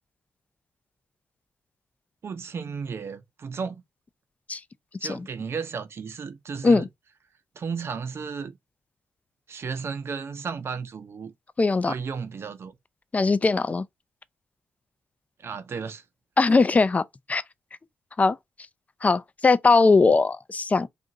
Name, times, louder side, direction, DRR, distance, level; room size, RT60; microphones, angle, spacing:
voice 1, 2.2-3.8 5.0-6.9 7.6-8.5 9.5-11.3 11.9-12.7 15.4-16.0, right 5 dB, 60° right, 0.8 m, -34 dB
voice 2, 11.6-11.9 13.1-13.8 16.4-17.4 18.2-18.4 19.0-20.9, left 3 dB, 30° left, 0.4 m, -20 dB
2.6 x 2.5 x 3.9 m
supercardioid pair, 55°, 5 cm